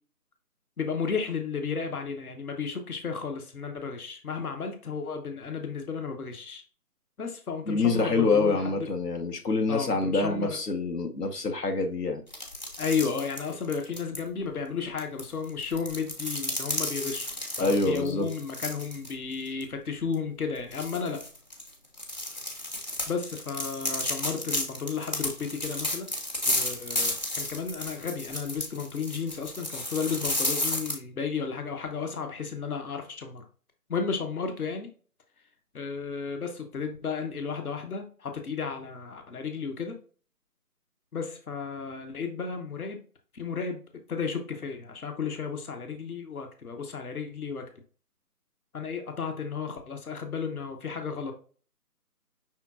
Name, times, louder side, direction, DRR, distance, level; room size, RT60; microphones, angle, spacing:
voice 1, 0.8-6.6 7.2-8.9 9.7-10.6 12.8-21.2 23.1-26.1 26.5-33.4 33.9-34.9 35.7-39.9 41.1-43.0 43.3-43.8 44.1-47.6 48.7-51.3, left 5 dB, 65° left, 5 dB, 1.1 m, -33 dB
voice 2, 7.7-12.2 17.6-18.3, left 3 dB, 85° left, 3 dB, 1.2 m, -26 dB
sound 1, 12.3-14.2 15.0-19.1 19.5-19.6 20.1-20.2 20.7-30.9, left 1 dB, 30° left, 0.8 m, -32 dB
5.8 x 3.7 x 2.4 m, 0.40 s
figure-of-eight pair, 165°, 47 cm